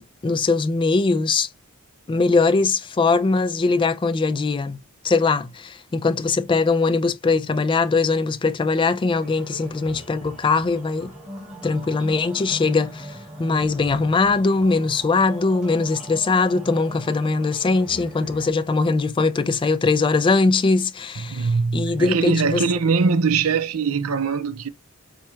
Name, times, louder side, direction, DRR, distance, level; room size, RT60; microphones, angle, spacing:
voice 1, 0.0-1.5 2.1-4.8 5.0-11.1 11.6-22.6, left 3 dB, 20° left, 0.3 m, -21 dB
sound 1, 9.1-18.5, equal, 5° right, 1.4 m, -39 dB
voice 2, 21.2-24.7, right 5 dB, 70° right, 0.5 m, -22 dB
4.3 x 2.3 x 3.0 m
head